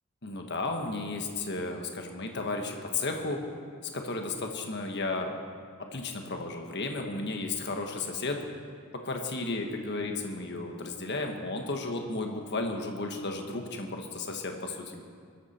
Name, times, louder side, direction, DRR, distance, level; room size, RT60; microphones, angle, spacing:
voice 1, 0.2-3.4 3.8-5.3 5.9-8.4 9.0-15.0, left 3 dB, 50° left, 3 dB, 1.4 m, -33 dB
22.0 x 13.0 x 4.4 m, 2.1 s
head